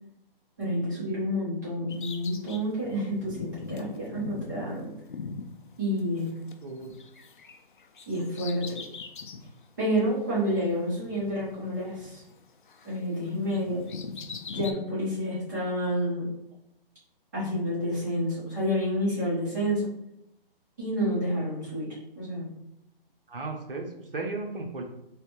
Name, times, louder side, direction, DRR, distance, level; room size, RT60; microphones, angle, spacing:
voice 1, 0.6-4.9 5.8-6.3 8.1-8.8 9.8-12.2 12.8-13.9 14.5-16.3 17.3-19.9 20.8-22.5, equal, 20° right, -10 dB, 1.1 m, -29 dB
Bird vocalization bird call bird song, 1.9-6.5 6.8-9.5 10.0-10.1 11.0-12.4 12.7-14.7, left 5 dB, 60° left, 0.4 m, -41 dB
voice 2, 6.6-6.9 23.3-24.8, right 3 dB, 65° right, 2 dB, 0.8 m, -35 dB
3.3 x 3.1 x 3.0 m, 0.80 s
hypercardioid pair, 180°, 29 cm